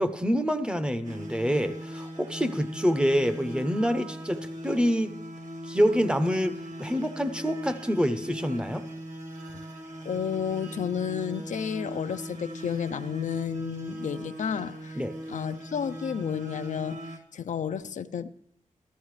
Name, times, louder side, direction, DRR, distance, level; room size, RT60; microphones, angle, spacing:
voice 1, 0.0-5.1 5.7-8.9 15.0-15.1, equal, 5° right, 0.6 m, -26 dB
sound 1, 1.0-17.2, equal, 70° right, 1.5 m, -39 dB
voice 2, 10.0-15.0 15.3-18.3, left 7 dB, 70° left, 0.4 m, -32 dB
14.0 x 13.0 x 3.2 m
wide cardioid pair, 130°, 13 cm